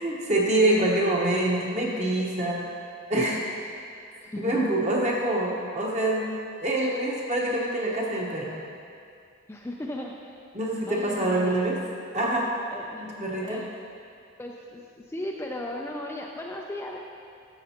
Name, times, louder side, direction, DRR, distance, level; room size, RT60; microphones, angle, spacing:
voice 1, 0.0-2.7 3.1-3.4 4.4-6.3 6.6-8.6 10.5-11.8 12.1-12.5 13.0-13.6, right 1 dB, 35° right, -3 dB, 1.2 m, -25 dB
voice 2, 4.2-4.6 9.5-10.4 10.9-11.6 12.7-13.0 13.4-13.7 14.4-17.0, left 1 dB, 10° left, -1 dB, 0.4 m, -36 dB
12.5 x 6.6 x 2.9 m, 2.3 s
head